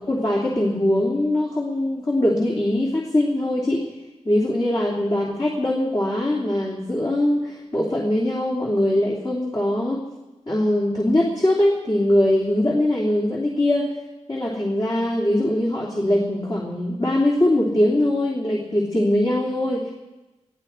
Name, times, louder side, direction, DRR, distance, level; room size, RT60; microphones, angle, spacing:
voice 1, 0.0-3.8 4.2-10.0 10.5-13.9 14.3-19.9, left 1 dB, 35° left, -4 dB, 3.0 m, -22 dB
21.0 x 14.0 x 4.5 m, 1.1 s
wide cardioid pair, 65°, 12 cm